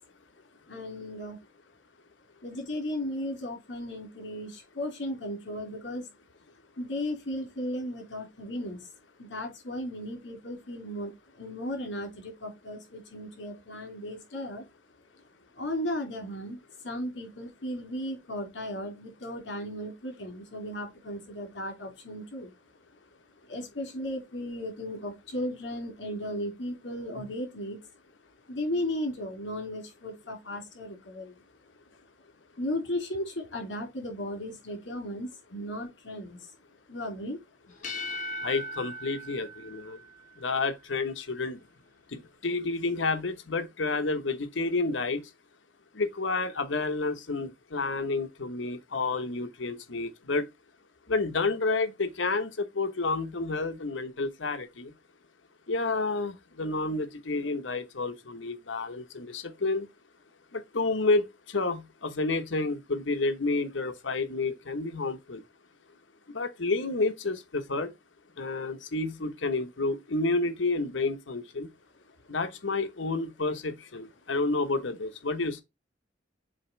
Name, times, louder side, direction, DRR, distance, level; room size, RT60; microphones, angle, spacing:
voice 1, 0.7-1.4 2.4-6.1 6.8-8.8 9.2-14.6 15.5-16.6 16.8-22.5 23.5-27.8 28.5-31.4 32.6-36.5 36.9-37.4, left 1 dB, 70° left, 3.2 m, -35 dB
sound 1, 37.7-40.5, left 1 dB, 45° left, 1.5 m, -38 dB
voice 2, 38.4-40.0 40.4-41.6 42.1-45.2 45.9-50.4 51.1-54.9 55.7-59.9 60.5-65.4 66.3-67.9 68.4-71.7 72.3-75.6, left 3 dB, 90° left, 1.1 m, -30 dB
7.6 x 3.0 x 4.5 m
head